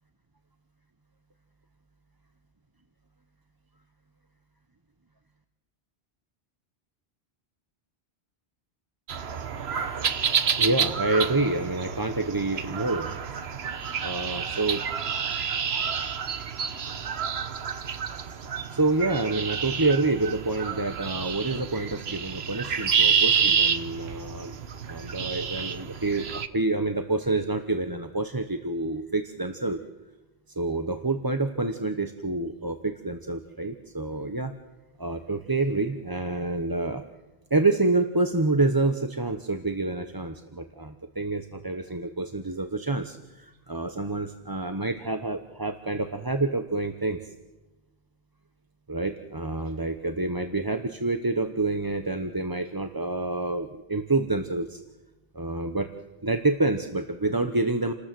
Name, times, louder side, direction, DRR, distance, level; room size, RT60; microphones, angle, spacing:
sound 1, 9.1-26.5, right 6 dB, 75° right, 1.3 m, -29 dB
voice 1, 10.6-13.1 14.0-14.8 16.3-16.5 18.4-24.6 24.9-29.8 30.5-34.5 35.0-37.0 37.5-47.3 48.9-54.8 55.3-55.9 56.2-57.9, right 2 dB, 20° right, 7 dB, 1.0 m, -28 dB
29.0 x 19.5 x 7.7 m, 1.1 s
omnidirectional pair, 1.1 m